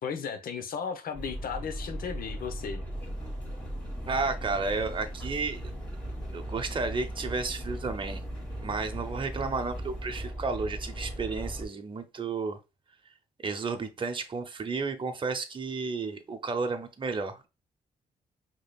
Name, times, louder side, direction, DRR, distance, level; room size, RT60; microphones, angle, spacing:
voice 1, 0.0-2.8, left 6 dB, 70° left, 0.8 m, -35 dB
sound 1, 1.1-11.7, right 1 dB, 10° left, 1.7 m, -38 dB
sound 2, 2.9-10.3, left 1 dB, 30° left, 1.7 m, -51 dB
voice 2, 4.0-5.6 6.3-8.2 8.6-12.6 13.4-17.5, right 4 dB, 30° right, 0.8 m, -32 dB
4.9 x 3.0 x 2.3 m
cardioid pair, 90°, 16 cm